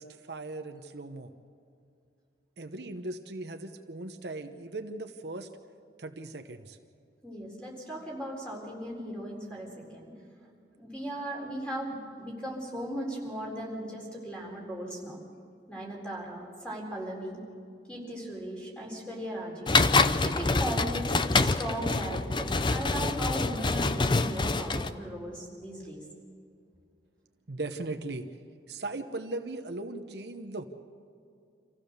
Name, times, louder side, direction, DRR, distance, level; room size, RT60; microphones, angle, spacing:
voice 1, 0.0-1.3 2.6-5.5 6.0-6.8 27.5-28.3 28.7-30.7, right 2 dB, 65° right, 6 dB, 1.0 m, -38 dB
voice 2, 7.2-10.1 10.8-15.2 15.7-17.4 17.9-19.8 20.2-26.0, right 1 dB, 5° left, -2 dB, 4.2 m, -37 dB
sound 1, 19.7-24.9, left 3 dB, 25° left, 0.6 m, -26 dB
26.0 x 15.5 x 6.8 m, 2.5 s
head